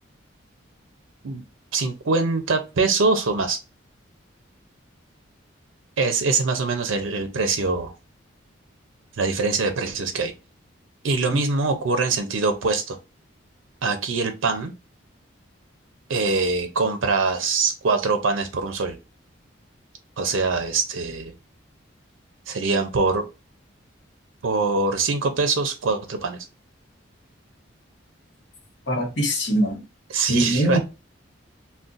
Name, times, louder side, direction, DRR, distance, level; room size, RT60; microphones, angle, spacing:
voice 1, 1.7-3.6 6.0-7.9 9.2-10.3 11.0-13.0 13.8-14.7 16.1-19.0 20.2-21.3 22.5-23.3 24.4-26.5 30.1-30.8, right 4 dB, 80° right, 0.5 m, -23 dB
voice 2, 28.9-29.8 30.3-30.8, right 1 dB, 60° left, 1.0 m, -22 dB
2.5 x 2.2 x 3.7 m
head